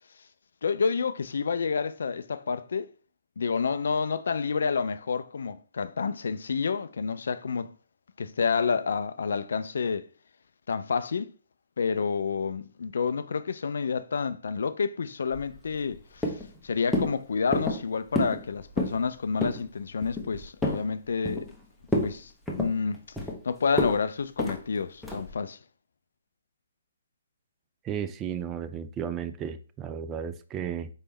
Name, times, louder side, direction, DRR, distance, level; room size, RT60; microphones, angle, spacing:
voice 1, 0.6-2.9 3.4-7.7 8.2-10.1 10.7-11.3 11.8-16.3 16.6-21.5 22.0-22.3 22.6-23.0 23.4-25.6, left 5 dB, 65° left, 0.3 m, -29 dB
sound 1, 15.3-16.0 16.2-16.6 16.9-17.1 17.5-17.8 18.1-18.4 18.7-19.0 19.4-19.6 20.0-20.8 21.2-21.6 21.9-22.1 22.5-23.4 23.8-24.0 24.4-24.6 25.0-25.3, left 1 dB, ahead, 0.8 m, -29 dB
voice 2, 27.8-30.9, right 8 dB, 20° right, 0.4 m, -34 dB
4.4 x 3.3 x 3.1 m
figure-of-eight pair, 135°, 0 cm